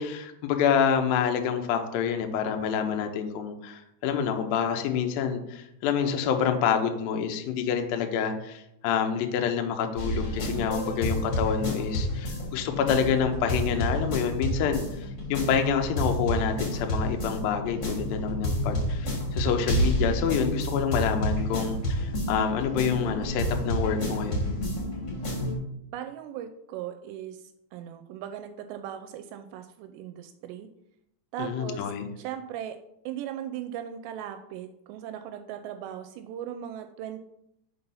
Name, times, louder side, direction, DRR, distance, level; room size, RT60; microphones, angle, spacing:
voice 1, 0.0-24.5 31.4-32.1, left 7 dB, 85° left, 5 dB, 2.1 m, -27 dB
sound 1, 10.0-25.5, equal, 40° left, 1.6 m, -29 dB
voice 2, 25.9-30.7 31.3-31.9 32.2-32.8 33.1-37.2, right 10 dB, 85° right, 8 dB, 2.6 m, -38 dB
5.7 x 5.4 x 5.5 m, 0.81 s
omnidirectional pair, 5.2 m